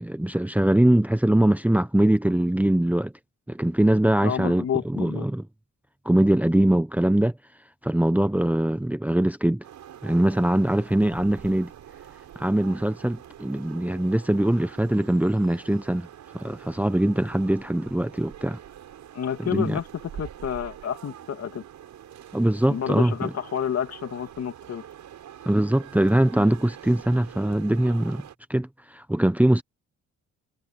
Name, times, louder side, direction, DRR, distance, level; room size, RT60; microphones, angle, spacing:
voice 1, 0.0-3.1 3.5-5.4 6.0-7.3 7.8-9.6 10.0-11.7 12.4-16.1 16.3-18.6 19.4-19.8 22.3-23.3 25.5-28.2 28.5-28.7 28.9-29.6, right 1 dB, 5° right, 1.0 m, -22 dB
voice 2, 4.2-5.3 19.1-19.9 20.2-21.6 22.7-24.8, left 9 dB, 55° left, 2.8 m, -29 dB
sound 1, 9.6-28.3, right 10 dB, 70° right, 7.5 m, -45 dB
cardioid pair, 90°, 30 cm